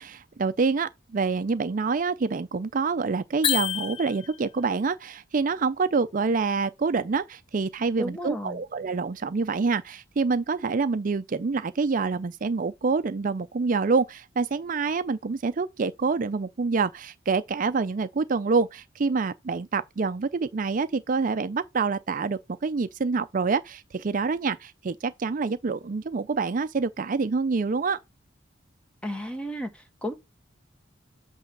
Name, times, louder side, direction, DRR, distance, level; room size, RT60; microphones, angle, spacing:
voice 1, 0.0-28.0, right 4 dB, 45° right, 0.4 m, -26 dB
sound 1, 3.4-4.6, left 9 dB, 25° left, 0.4 m, -28 dB
voice 2, 8.0-8.6 29.0-30.1, equal, 5° left, 1.2 m, -33 dB
8.3 x 3.1 x 5.3 m
head